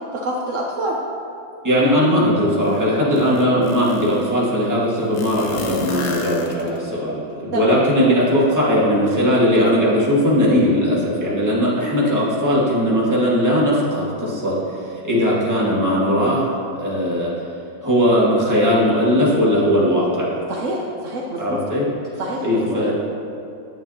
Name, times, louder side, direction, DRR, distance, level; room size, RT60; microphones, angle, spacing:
voice 1, 0.1-1.0 7.5-7.7 20.5-21.6 22.2-22.8, right 1 dB, 75° right, -2 dB, 0.7 m, -26 dB
voice 2, 1.6-14.6 15.0-17.3 17.8-20.4 21.4-21.9 22.4-22.9, equal, 10° right, -7 dB, 1.4 m, -18 dB
sound 1, 2.6-2.7 3.1-4.3 5.1-7.0, left 4 dB, 65° left, 0.9 m, -33 dB
9.3 x 9.0 x 2.8 m, 2.7 s
omnidirectional pair, 2.2 m